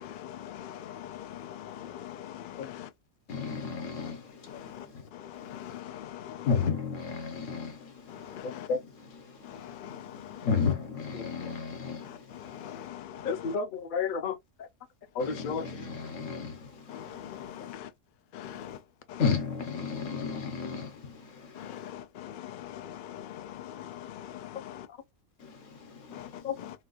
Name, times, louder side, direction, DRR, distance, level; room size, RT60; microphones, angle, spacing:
voice 1, 0.0-2.9 5.3-6.5 8.3-8.7 9.8-10.0 12.6-13.3 16.9-17.9 18.3-18.8 19.1-19.2 21.6-24.8 26.1-26.3, left 11 dB, 90° left, 0.4 m, -42 dB
voice 2, 3.3-5.8 6.5-12.8 15.2-17.8 18.4-18.8 19.2-21.9 25.4-26.7, left 5 dB, 65° left, 1.3 m, -34 dB
voice 3, 13.2-14.4 15.1-15.6 26.4-26.6, left 5 dB, 50° left, 0.6 m, -31 dB
4.2 x 2.2 x 2.4 m
omnidirectional pair, 1.4 m